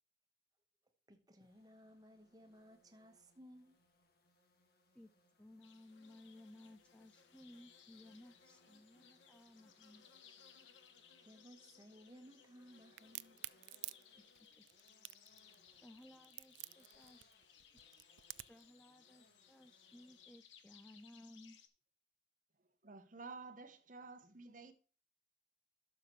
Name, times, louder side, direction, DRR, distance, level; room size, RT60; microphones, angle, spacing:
voice 1, 1.1-3.8 11.2-13.4, equal, 20° right, 1.2 m, -60 dB
sound 1, 1.4-20.4, left 2 dB, 50° left, 1.7 m, -73 dB
voice 2, 4.9-10.1 14.2-14.7 15.8-17.3 18.5-21.6, left 1 dB, 5° left, 0.3 m, -60 dB
sound 2, 5.6-21.7, left 8 dB, 80° left, 1.1 m, -65 dB
Crack, 13.0-18.7, right 19 dB, 75° right, 0.3 m, -50 dB
voice 3, 22.8-24.7, right 4 dB, 40° right, 0.9 m, -52 dB
11.5 x 6.6 x 3.1 m
head